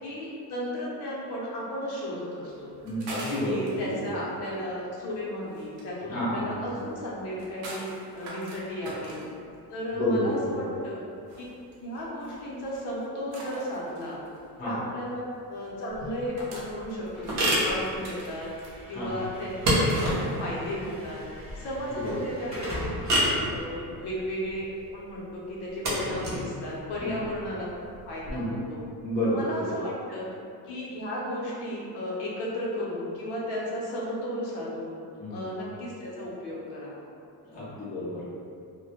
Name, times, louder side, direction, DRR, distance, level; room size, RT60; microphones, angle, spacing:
voice 1, 0.0-2.7 3.4-9.1 9.7-11.0 11.8-14.2 14.6-15.2 15.5-18.5 18.9-22.8 23.2-27.7 28.1-28.8 29.2-30.3 30.7-35.0 35.3-37.0, equal, 80° left, -5 dB, 0.7 m, -34 dB
sound 1, 2.5-21.7, right 1 dB, 85° right, 0.7 m, -45 dB
voice 2, 2.8-4.1 6.1-6.6 9.9-10.6 14.6-14.7 18.9-19.1 22.0-22.1 27.0-27.1 28.3-28.5 29.0-29.7 35.2-35.4 37.4-38.2, equal, 25° left, -10 dB, 0.6 m, -30 dB
sound 2, 15.9-28.3, equal, 45° right, 0.6 m, -30 dB
Slam / Alarm, 17.1-25.2, equal, 15° right, 1.0 m, -41 dB
2.2 x 2.1 x 2.8 m, 2.4 s
cardioid pair, 170°, 39 cm